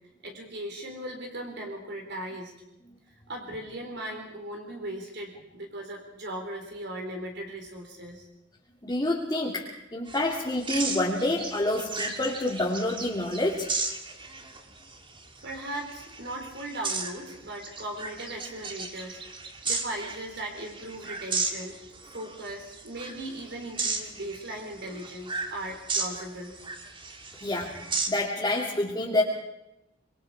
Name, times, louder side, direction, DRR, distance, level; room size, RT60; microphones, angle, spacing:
voice 1, 0.2-2.5 3.3-8.3 15.4-21.8 22.1-26.5, right 1 dB, 60° right, 2 dB, 3.8 m, -38 dB
voice 2, 8.8-13.7 27.4-27.8 28.1-29.2, left 1 dB, 20° left, -4 dB, 2.6 m, -27 dB
sound 1, 10.1-28.1, right 4 dB, 25° right, 2.1 m, -35 dB
26.0 x 22.5 x 4.8 m, 0.87 s
head